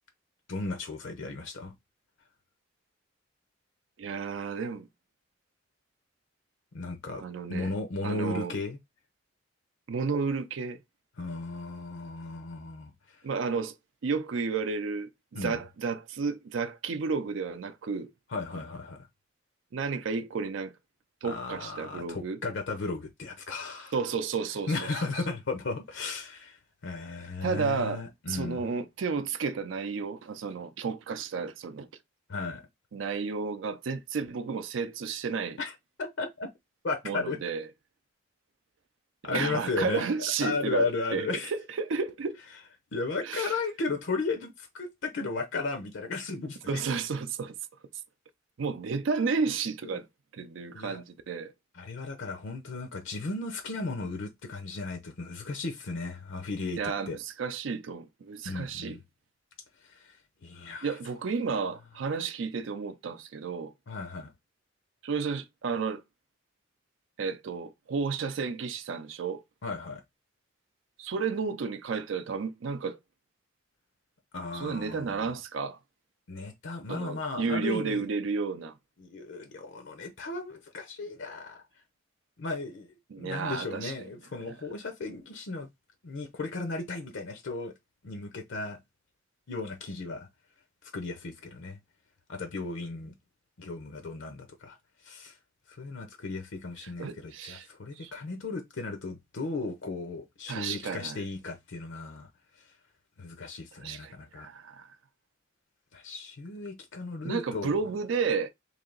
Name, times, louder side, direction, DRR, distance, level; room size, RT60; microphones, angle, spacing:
voice 1, 0.5-1.7 6.7-7.2 7.5-8.8 11.2-13.2 15.3-15.6 18.3-19.1 21.2-23.9 24.7-28.7 32.3-32.6 35.6-36.5 36.8-37.4 39.2-40.0 40.4-41.5 42.9-46.8 49.8-50.0 50.7-51.0 51.7-57.2 58.4-59.0 59.8-60.2 60.4-61.0 63.9-64.3 69.6-70.0 74.3-75.3 76.3-78.1 79.0-81.6 82.4-85.7 86.0-87.7 88.0-88.8 89.5-90.3 90.8-91.8 92.3-93.1 93.6-94.8 95.0-95.4 95.7-102.3 102.6-102.7 103.2-104.5 105.9-107.8, left 3 dB, 65° left, 0.6 m, -35 dB
voice 2, 4.0-4.9 7.2-7.7 8.0-8.5 9.9-10.8 13.2-13.7 14.0-15.1 15.4-18.1 19.7-20.7 21.2-22.4 23.9-24.9 27.4-28.0 28.3-31.9 32.9-35.6 37.0-37.6 39.2-42.4 43.3-43.6 46.7-47.5 48.6-50.0 50.3-51.5 56.8-59.0 60.8-63.7 65.0-66.0 67.2-69.4 71.0-73.0 74.5-75.8 76.9-78.7 83.1-83.9 96.8-97.7 98.0-98.1 100.5-101.2 103.8-104.9 107.2-108.5, right 5 dB, 70° right, 0.5 m, -32 dB
3.3 x 2.7 x 3.8 m
head